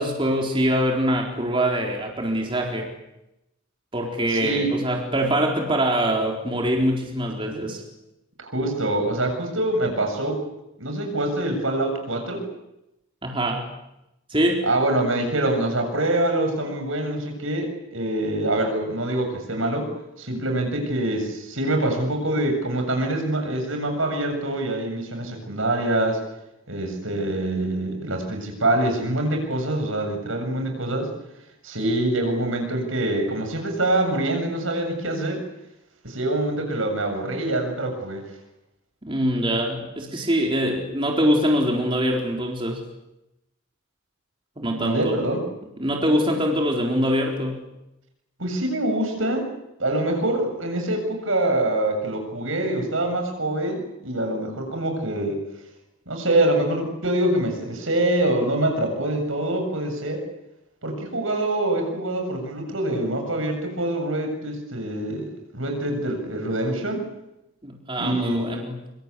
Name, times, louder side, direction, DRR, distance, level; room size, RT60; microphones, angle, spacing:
voice 1, 0.0-2.9 3.9-7.8 13.2-13.6 14.3-14.6 39.0-42.8 44.6-45.2 45.8-47.6 67.6-68.8, equal, 25° right, 1 dB, 4.1 m, -23 dB
voice 2, 4.3-4.7 8.4-10.4 10.8-12.5 14.6-19.9 20.2-26.2 26.7-31.1 31.6-35.4 36.0-38.2 44.8-45.4 48.4-49.5 49.8-55.4 56.1-60.2 60.8-67.0 68.0-68.5, right 1 dB, 75° right, 5 dB, 7.5 m, -25 dB
26.0 x 25.5 x 8.4 m, 0.89 s
head